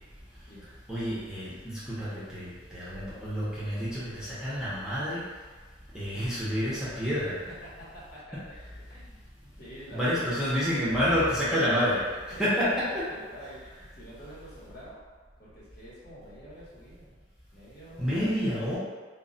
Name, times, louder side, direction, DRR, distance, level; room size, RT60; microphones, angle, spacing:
voice 1, 0.9-5.3 5.9-7.4 8.3-8.4 9.9-13.0 18.0-18.8, equal, 5° right, -10 dB, 0.6 m, -29 dB
voice 2, 7.5-8.5 8.8-9.2 9.6-10.6 12.3-15.0 15.4-18.2, equal, 55° left, -8 dB, 0.9 m, -47 dB
2.2 x 2.0 x 3.7 m, 1.4 s
head